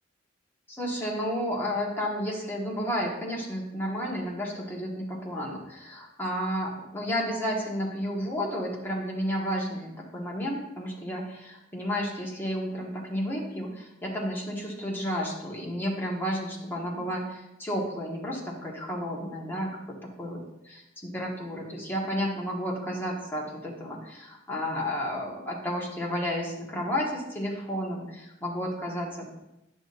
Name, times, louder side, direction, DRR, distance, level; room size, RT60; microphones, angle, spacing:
voice 1, 0.7-20.4 21.0-29.4, equal, 10° left, -3 dB, 1.5 m, -32 dB
10.0 x 6.2 x 2.6 m, 0.89 s
head